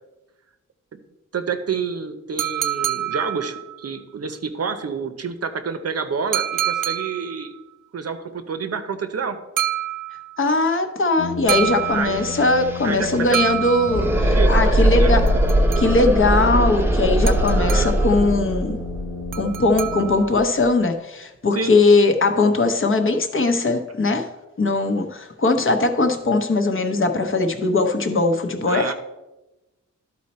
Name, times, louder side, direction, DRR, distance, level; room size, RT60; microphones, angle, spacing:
voice 1, 1.3-7.5 7.9-9.4 11.9-12.2 12.8-13.5 14.2-15.2 17.5-17.9 21.5-21.7 28.7-28.9, right 5 dB, 50° right, 9 dB, 0.7 m, -28 dB
sound 1, 2.4-3.9 6.3-7.5 9.6-10.4 11.5-12.5 13.3-14.3 15.3-16.2 17.3-18.2 19.3-20.4, right 11 dB, 90° right, 0.5 m, -27 dB
voice 2, 10.4-15.2 15.8-18.8 19.3-24.3 24.6-28.9, left 3 dB, 40° left, 6 dB, 0.8 m, -20 dB
Brass instrument, 11.2-20.6, left 4 dB, 85° left, 0.7 m, -35 dB
sound 2, 11.5-11.6 11.8-20.6, right 1 dB, 5° right, 0.7 m, -21 dB
12.5 x 4.3 x 4.2 m, 1.0 s
wide cardioid pair, 155°, 30 cm